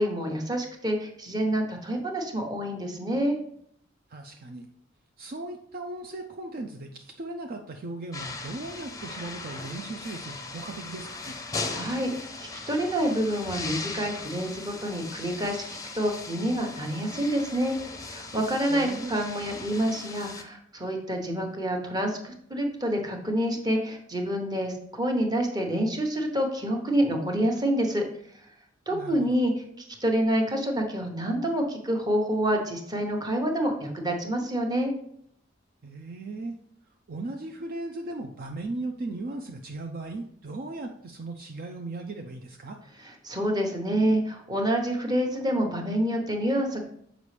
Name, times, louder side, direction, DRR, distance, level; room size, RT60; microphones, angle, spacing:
voice 1, 0.0-3.4 11.7-12.1 12.4-28.1 28.9-29.5 29.8-34.9 43.2-46.8, equal, 20° right, 2 dB, 1.0 m, -27 dB
voice 2, 4.1-4.7 5.2-11.4 18.7-19.1 28.9-29.4 35.8-36.6 37.1-42.8, right 2 dB, 50° right, 4 dB, 0.5 m, -37 dB
sound 1, 8.1-20.4, left 3 dB, 20° left, 0.6 m, -38 dB
6.9 x 5.0 x 3.3 m, 0.67 s
head